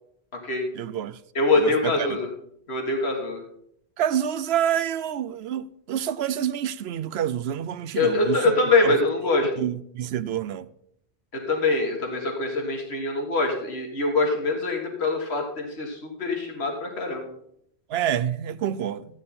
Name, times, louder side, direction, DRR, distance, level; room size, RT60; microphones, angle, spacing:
voice 1, 0.7-1.2 1.6-2.1 4.0-8.5 8.8-8.9 9.6-10.7 17.9-19.1, right 10 dB, 75° right, 0.8 m, -27 dB
voice 2, 1.4-2.2 2.7-3.4 8.0-9.5 11.3-17.3, left 3 dB, 75° left, 1.9 m, -24 dB
13.5 x 8.7 x 4.2 m
omnidirectional pair, 1.1 m